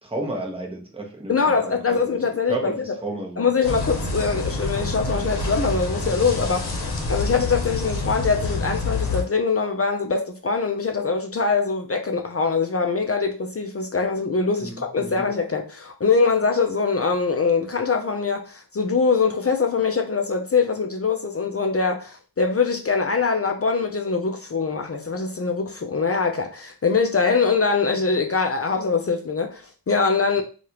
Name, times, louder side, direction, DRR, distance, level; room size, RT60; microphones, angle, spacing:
voice 1, 0.0-2.2 2.5-3.5 14.6-15.2, right 2 dB, 15° right, 0.9 m, -32 dB
voice 2, 1.3-2.7 3.4-6.7 7.1-30.4, left 4 dB, 35° left, 0.5 m, -23 dB
sound 1, 3.6-9.2, left 3 dB, 65° left, 0.9 m, -27 dB
3.3 x 2.4 x 2.8 m
wide cardioid pair, 75°, 41 cm